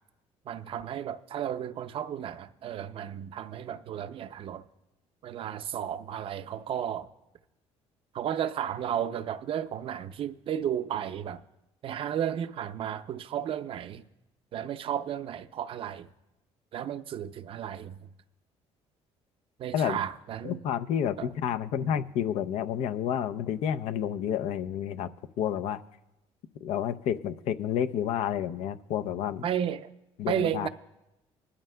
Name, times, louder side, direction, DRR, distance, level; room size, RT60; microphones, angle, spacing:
voice 1, 0.5-4.6 5.2-7.1 8.1-11.4 11.8-14.0 14.5-16.1 16.7-18.0 19.6-20.6 21.2-21.3 21.8-21.9 29.4-29.9 30.3-30.7, right 9 dB, 50° right, 0.5 m, -33 dB
voice 2, 20.4-25.1 25.4-25.8 26.6-29.5 30.2-30.7, left 9 dB, 75° left, 0.5 m, -30 dB
20.0 x 12.5 x 2.2 m
cardioid pair, 110°, 12 cm